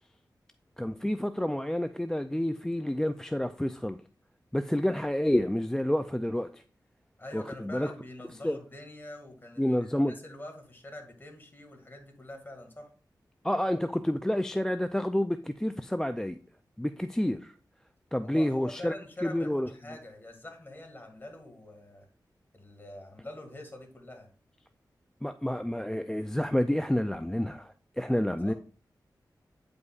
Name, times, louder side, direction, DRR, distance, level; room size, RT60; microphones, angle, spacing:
voice 1, 0.8-4.0 4.5-6.6 7.3-7.9 8.4-8.6 9.6-10.1 13.4-16.4 16.8-17.6 18.1-18.9 19.2-19.7 25.2-28.5, left 1 dB, 5° left, 10 dB, 0.4 m, -29 dB
voice 2, 7.2-12.9 18.2-22.1 22.5-24.3 28.1-28.5, left 1 dB, 30° left, 2 dB, 2.0 m, -45 dB
9.3 x 5.2 x 2.4 m, 0.40 s
cardioid pair, 55°, 7 cm